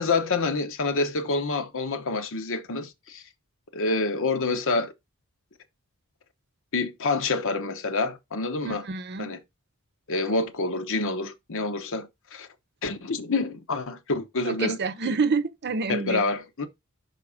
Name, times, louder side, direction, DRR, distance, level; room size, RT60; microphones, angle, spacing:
voice 1, 0.0-3.2 3.7-4.9 6.7-8.9 9.2-9.4 10.1-12.5 12.8-14.8 15.9-16.7, left 3 dB, 60° left, 1.0 m, -27 dB
voice 2, 8.6-9.3 14.4-16.3, right 4 dB, 50° right, 0.7 m, -28 dB
6.0 x 4.1 x 4.9 m
head